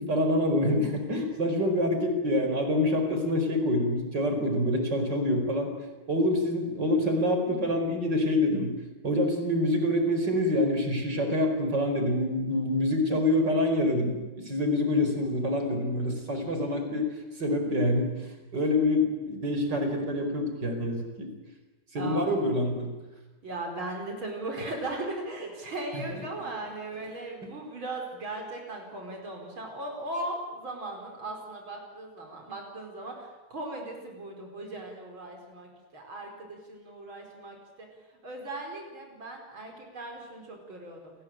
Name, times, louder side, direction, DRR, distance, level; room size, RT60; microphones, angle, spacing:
voice 1, 0.0-5.7 6.1-8.7 9.0-21.3 21.9-22.9 25.9-26.2, left 1 dB, 60° right, 5 dB, 5.3 m, -26 dB
voice 2, 22.0-22.3 23.4-37.9 38.2-41.1, right 2 dB, 80° right, 2 dB, 5.7 m, -38 dB
29.5 x 20.5 x 9.1 m, 1.1 s
omnidirectional pair, 2.2 m